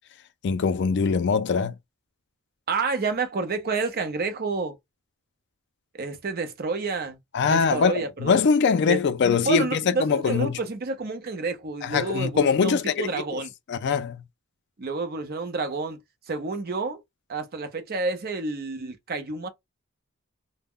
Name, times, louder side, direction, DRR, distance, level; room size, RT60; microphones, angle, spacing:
voice 1, 0.4-1.8 7.3-10.6 11.8-13.4 13.7-14.2, left 5 dB, 50° left, 0.4 m, -23 dB
voice 2, 2.7-4.8 5.9-7.2 7.5-8.4 8.9-13.5 14.8-16.0 16.3-17.0 17.3-19.5, right 3 dB, 45° right, 0.5 m, -29 dB
2.1 x 2.1 x 3.5 m
head